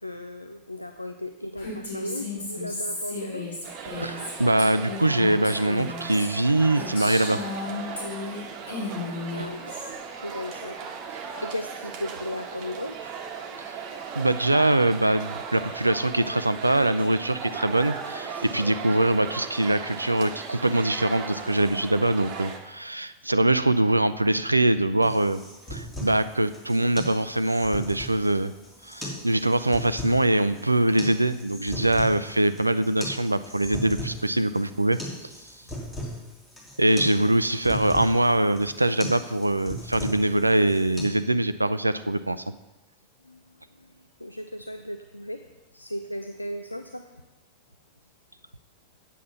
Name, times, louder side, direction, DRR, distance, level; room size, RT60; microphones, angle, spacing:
voice 1, 0.0-3.5 9.3-13.2 43.2-43.4 43.8-45.4 45.7-47.1, left 1 dB, 85° left, 7 dB, 0.4 m, -36 dB
Female speech woman speaking, 1.6-8.4 8.7-9.9, left 3 dB, 70° left, 3.7 m, -34 dB
sound 1, 3.6-22.6, right 6 dB, 40° right, 1.3 m, -37 dB
voice 2, 4.0-7.4 14.2-25.4 25.7-28.5 28.8-35.0 36.8-42.4, right 1 dB, 85° right, 13 dB, 0.4 m, -23 dB
sound 2, 25.0-41.0, equal, 15° left, 3.3 m, -38 dB
8.6 x 8.3 x 5.7 m, 1.1 s
figure-of-eight pair, 90°, 0 cm